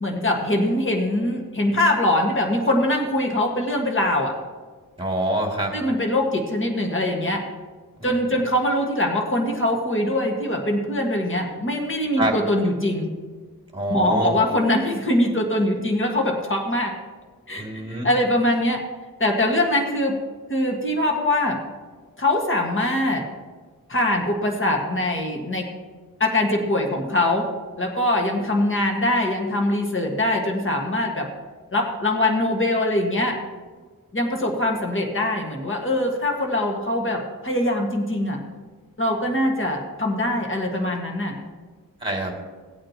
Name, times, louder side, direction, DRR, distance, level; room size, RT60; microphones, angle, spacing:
voice 1, 0.0-4.3 5.7-7.4 8.0-13.1 13.9-16.9 17.5-18.8 19.2-20.1 20.5-21.6 22.2-23.2 23.9-25.7 26.2-27.4 27.8-31.3 31.7-33.4 34.1-38.4 39.0-41.3, left 1 dB, 35° left, 1 dB, 1.7 m, -22 dB
voice 2, 5.0-5.8 8.0-8.1 12.2-12.4 13.7-14.4 17.6-18.1 42.0-42.3, right 1 dB, 15° right, 0 dB, 2.6 m, -25 dB
17.5 x 8.7 x 3.0 m, 1.5 s
wide cardioid pair, 85°, 35 cm